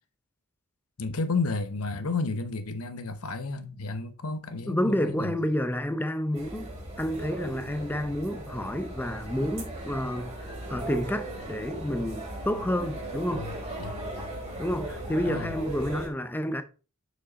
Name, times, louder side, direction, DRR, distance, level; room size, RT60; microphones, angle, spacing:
voice 1, 1.0-5.4 13.3-13.5 13.8-14.0 15.2-15.5, left 3 dB, 80° left, 1.0 m, -32 dB
voice 2, 4.7-6.7 7.0-13.4 14.6-16.6, equal, 10° left, 0.6 m, -29 dB
sound 1, 6.3-16.1, right 1 dB, 30° right, 2.8 m, -38 dB
6.2 x 5.5 x 4.0 m
head